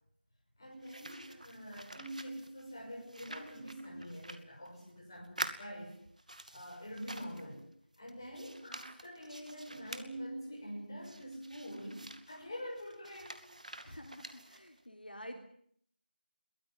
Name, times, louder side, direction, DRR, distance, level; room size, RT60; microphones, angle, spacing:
voice 1, 0.6-6.0 6.5-7.7 8.0-13.4, equal, 20° left, -1 dB, 6.4 m, -45 dB
sound 1, 0.8-5.0 5.2-7.6 7.9-10.1 11.0-14.8, right 1 dB, 45° right, 2.3 m, -48 dB
voice 2, 13.8-15.4, equal, 60° left, 4 dB, 3.6 m, -49 dB
23.0 x 18.5 x 9.7 m, 0.65 s
figure-of-eight pair, 170°, 6 cm